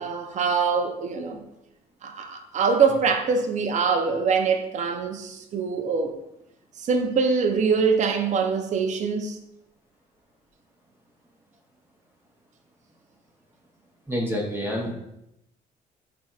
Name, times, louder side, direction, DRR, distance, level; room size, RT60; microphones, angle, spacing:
voice 1, 0.0-1.4 2.0-6.1 6.8-9.4, right 5 dB, 40° right, 5 dB, 0.5 m, -24 dB
voice 2, 14.1-14.9, equal, 10° right, -2 dB, 0.8 m, -27 dB
4.1 x 3.4 x 2.4 m, 0.84 s
supercardioid pair, 85°, 18 cm